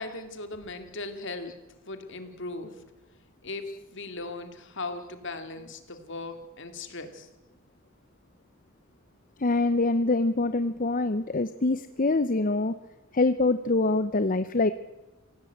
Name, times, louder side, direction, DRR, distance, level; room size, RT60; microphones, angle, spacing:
voice 1, 0.0-1.6 1.9-2.8 3.4-3.7 3.9-7.3, left 3 dB, 60° left, 8 dB, 2.6 m, -38 dB
voice 2, 9.4-12.8 13.1-14.7, left 2 dB, 40° left, 12 dB, 0.7 m, -25 dB
25.0 x 17.0 x 8.0 m, 1.1 s
head